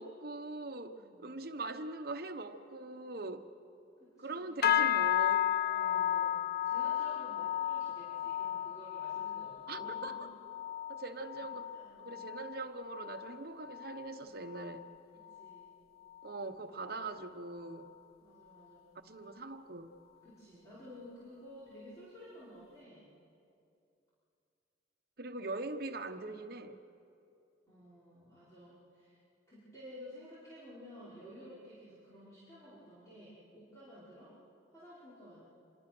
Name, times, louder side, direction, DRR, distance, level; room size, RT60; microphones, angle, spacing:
voice 1, 0.0-3.5 4.2-5.5 9.7-10.2 10.9-11.7 12.0-14.9 16.2-17.9 19.0-19.9 25.2-26.8, right 3 dB, 60° right, 8 dB, 1.1 m, -42 dB
voice 2, 0.9-1.4 4.0-4.4 5.6-10.3 11.4-11.5 11.7-12.2 15.1-15.7 18.2-18.9 20.2-23.1 27.7-29.2 29.5-34.3 34.7-35.4, equal, 20° left, -11 dB, 5.5 m, -53 dB
sound 1, 4.6-14.2 14.5-14.9 15.3-15.6 16.2-16.3, left 11 dB, 60° left, 0.5 m, -34 dB
27.0 x 22.5 x 6.2 m, 2.6 s
head